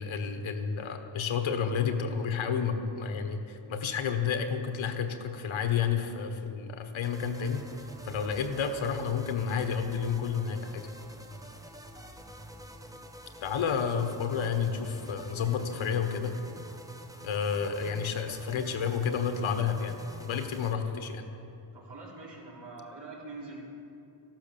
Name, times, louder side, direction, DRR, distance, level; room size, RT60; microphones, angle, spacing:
voice 1, 0.0-7.6 8.0-10.9 13.4-16.4 17.2-19.9 20.2-21.2, left 6 dB, 70° left, 6 dB, 1.4 m, -30 dB
sound 1, 7.0-20.7, equal, 5° right, 0.8 m, -48 dB
voice 2, 21.7-23.6, right 3 dB, 55° right, -4 dB, 3.8 m, -44 dB
13.5 x 12.0 x 7.0 m, 2.7 s
cardioid pair, 120°, 49 cm